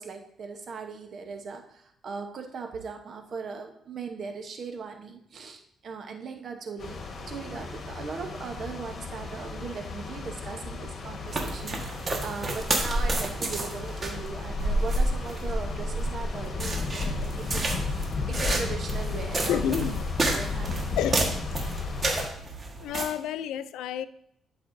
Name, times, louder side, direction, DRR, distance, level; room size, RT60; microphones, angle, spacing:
voice 1, 0.0-17.7 18.3-19.9 20.3-21.3, right 5 dB, 55° right, 4 dB, 0.9 m, -39 dB
sound 1, 6.8-22.3, left 3 dB, 50° left, 1.4 m, -34 dB
sound 2, 11.3-23.0, right 2 dB, 30° right, 1.5 m, -30 dB
voice 2, 19.5-20.0 21.0-21.2 22.8-24.1, left 9 dB, 85° left, 15 dB, 0.3 m, -29 dB
11.0 x 5.4 x 2.6 m, 0.74 s
cardioid pair, 90°, 0 cm